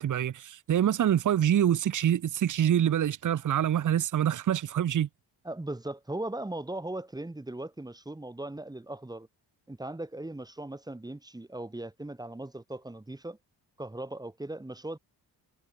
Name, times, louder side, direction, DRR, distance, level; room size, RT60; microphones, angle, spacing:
voice 1, 0.0-5.1, right 10 dB, 45° right, 0.9 m, -26 dB
voice 2, 5.4-9.3 9.7-13.4 13.8-15.0, right 1 dB, 10° right, 1.6 m, -38 dB
cardioid pair, 140°, 43 cm